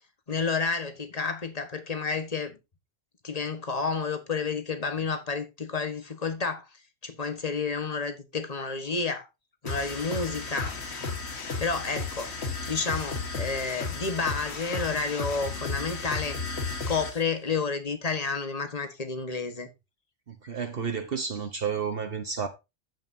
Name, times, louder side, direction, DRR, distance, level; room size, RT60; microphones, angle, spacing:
voice 1, 0.3-2.6 3.2-6.7 7.0-9.3 9.6-10.8 11.6-16.4 16.9-19.7, left 4 dB, 35° left, 1.5 m, -30 dB
sound 1, 9.7-17.2, left 4 dB, 70° left, 1.8 m, -34 dB
voice 2, 20.3-22.5, right 6 dB, 55° right, 1.3 m, -31 dB
14.5 x 5.6 x 2.7 m
omnidirectional pair, 1.2 m